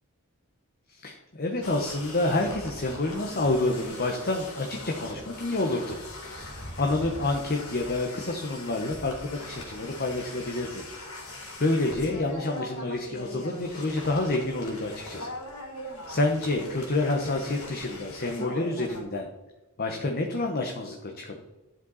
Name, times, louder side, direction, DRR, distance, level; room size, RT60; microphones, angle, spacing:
voice 1, 0.9-6.0 6.4-10.9 11.2-15.3 15.8-19.3 19.8-21.4, left 2 dB, 45° left, 2 dB, 1.0 m, -28 dB
sound 1, 1.6-19.0, left 1 dB, 75° left, 3.9 m, -41 dB
11.5 x 7.6 x 4.1 m, 1.0 s
head